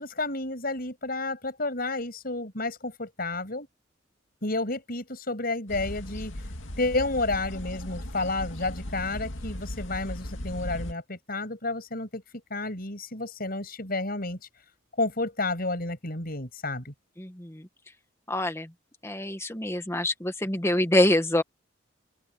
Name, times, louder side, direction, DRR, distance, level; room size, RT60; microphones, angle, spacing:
voice 1, 0.0-3.7 4.4-6.3 6.8-12.2 12.5-14.4 15.0-16.9, left 2 dB, 50° left, 6.9 m, -31 dB
sound 1, 5.7-10.9, left 1 dB, 85° left, 2.3 m, -37 dB
voice 2, 17.2-17.7 18.3-18.7 19.0-21.4, left 1 dB, 15° left, 1.7 m, -25 dB
open air
head